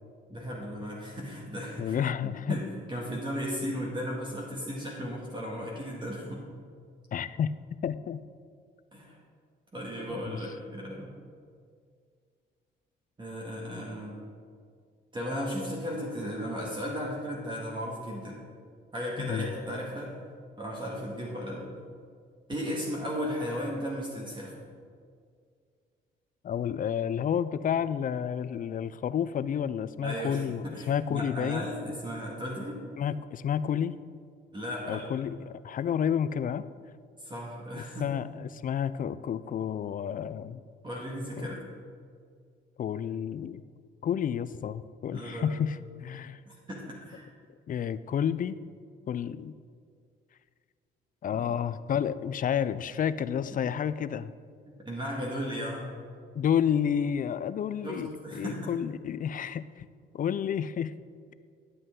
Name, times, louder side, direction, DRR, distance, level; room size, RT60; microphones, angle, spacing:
voice 1, 0.3-6.4 8.9-9.2 9.7-11.1 13.2-14.2 15.1-18.4 18.9-20.1 20.6-21.7 22.5-24.6 30.0-32.8 34.5-35.1 37.2-38.2 40.8-41.6 45.1-45.6 46.5-47.3 53.5-53.6 54.6-56.0 57.8-58.7, equal, 25° right, -3 dB, 1.8 m, -35 dB
voice 2, 1.8-2.6 7.1-7.5 7.8-8.2 10.1-10.4 19.2-19.5 26.4-31.7 33.0-34.0 34.8-36.7 38.0-40.6 41.4-41.5 42.8-43.6 44.0-46.4 47.7-48.6 49.1-49.5 51.2-54.3 56.3-59.9 60.1-60.9, left 8 dB, 45° left, 14 dB, 0.4 m, -30 dB
11.5 x 7.8 x 3.7 m, 2.1 s
cardioid pair, 90°, 20 cm